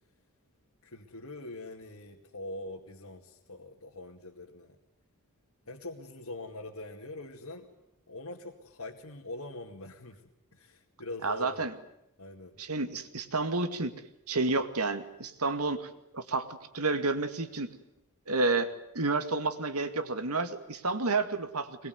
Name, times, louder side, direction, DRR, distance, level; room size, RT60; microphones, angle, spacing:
voice 1, 0.8-4.8 5.7-7.7 8.1-10.2 10.5-11.7 12.2-12.6, left 2 dB, 75° left, -1 dB, 2.3 m, -43 dB
voice 2, 11.2-11.7 12.6-13.9 14.3-17.7 18.3-21.9, right 3 dB, 75° right, 10 dB, 2.2 m, -30 dB
24.0 x 21.5 x 9.4 m, 0.83 s
head